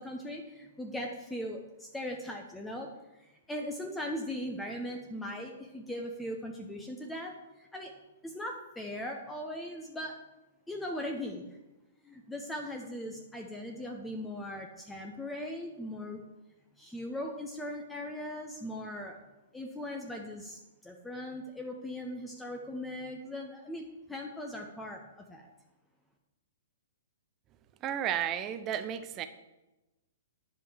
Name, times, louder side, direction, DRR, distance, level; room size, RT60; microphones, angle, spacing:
voice 1, 0.0-2.9 3.2-7.9 8.2-10.2 10.7-11.6 12.0-16.2 16.8-19.2 19.5-25.5, left 1 dB, 5° left, 1 dB, 1.0 m, -39 dB
voice 2, 27.8-29.3, right 10 dB, 25° right, 10 dB, 0.7 m, -33 dB
10.5 x 5.4 x 7.9 m, 1.0 s
figure-of-eight pair, 115°, 0 cm